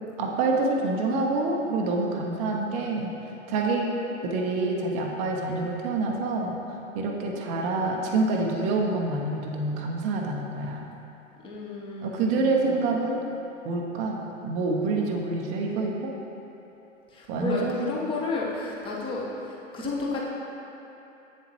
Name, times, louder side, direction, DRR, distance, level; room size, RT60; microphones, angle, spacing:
voice 1, 0.2-3.1 3.5-3.9 4.2-6.6 6.9-10.9 12.0-13.2 13.6-16.1 17.3-17.8, right 3 dB, 20° right, 0 dB, 0.5 m, -27 dB
voice 2, 11.4-13.0 17.1-20.2, left 3 dB, 15° left, -4 dB, 0.8 m, -32 dB
8.1 x 7.1 x 3.0 m, 3.0 s
figure-of-eight pair, 105°, 39 cm